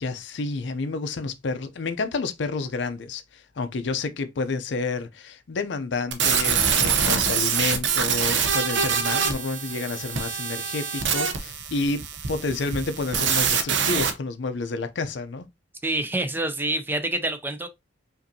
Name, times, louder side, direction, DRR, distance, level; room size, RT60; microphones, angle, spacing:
voice 1, 0.0-15.5, left 3 dB, 65° left, 0.5 m, -30 dB
sound 1, 6.1-14.1, right 6 dB, 70° right, 0.7 m, -24 dB
voice 2, 15.8-17.7, right 2 dB, 10° right, 0.4 m, -27 dB
5.1 x 2.6 x 2.6 m
head